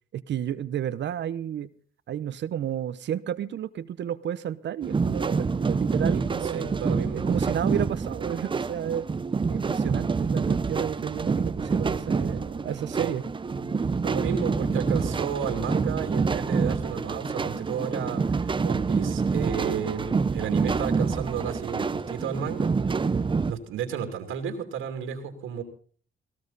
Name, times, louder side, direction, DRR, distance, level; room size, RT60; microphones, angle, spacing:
voice 1, 0.1-1.7 2.1-9.1 9.5-13.2, right 10 dB, 65° right, 13 dB, 0.9 m, -32 dB
sound 1, 4.8-23.5, right 4 dB, 25° right, 0.8 m, -27 dB
voice 2, 6.1-7.2 13.0-13.2 14.0-22.7 23.4-25.6, right 7 dB, 90° right, 6 dB, 2.8 m, -32 dB
sound 2, 8.6-18.5, left 3 dB, 50° left, 2.4 m, -48 dB
19.0 x 17.5 x 4.1 m, 0.43 s
cardioid pair, 90°, 20 cm